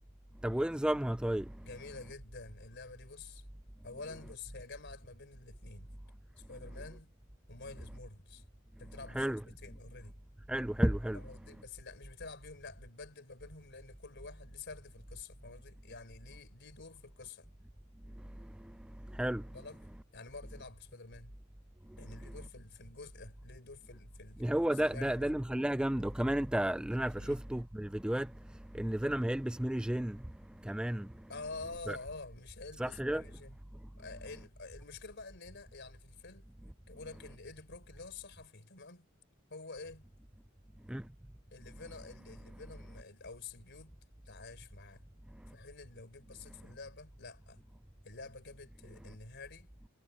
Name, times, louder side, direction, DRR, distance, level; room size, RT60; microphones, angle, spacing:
voice 1, 0.4-1.4 9.2-9.4 10.5-11.2 19.2-19.4 24.4-28.3 28.8-30.2 30.7-31.1 31.9-32.0 32.8-33.2 40.9-41.0, right 1 dB, 5° right, 0.3 m, -32 dB
voice 2, 1.6-3.5 3.8-5.9 6.4-7.1 7.5-8.4 8.8-10.2 11.1-17.5 19.5-21.3 22.0-24.4 24.7-25.3 27.2-27.4 31.3-33.6 34.0-36.5 36.9-39.1 39.5-40.1 41.5-44.0 44.3-45.1 45.5-47.6 48.0-49.7, left 3 dB, 55° left, 4.3 m, -49 dB
head